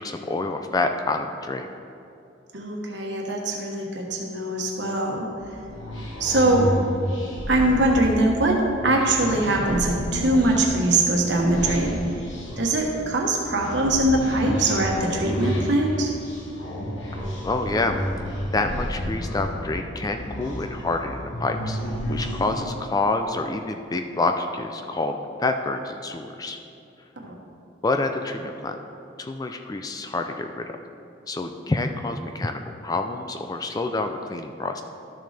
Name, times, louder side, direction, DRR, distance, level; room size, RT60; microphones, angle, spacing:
voice 1, 0.0-1.7 17.4-18.0 18.5-21.8 22.1-26.6 27.8-28.8 29.2-30.6 31.3-34.8, left 2 dB, 20° left, 6 dB, 0.3 m, -27 dB
voice 2, 2.5-5.3 6.2-6.7 7.5-12.0 12.6-16.1 27.2-27.3, right 2 dB, 65° right, 0 dB, 1.3 m, -22 dB
sound 1, 5.4-22.8, equal, 75° left, 1.2 m, -31 dB
12.5 x 6.4 x 3.4 m, 2.7 s
head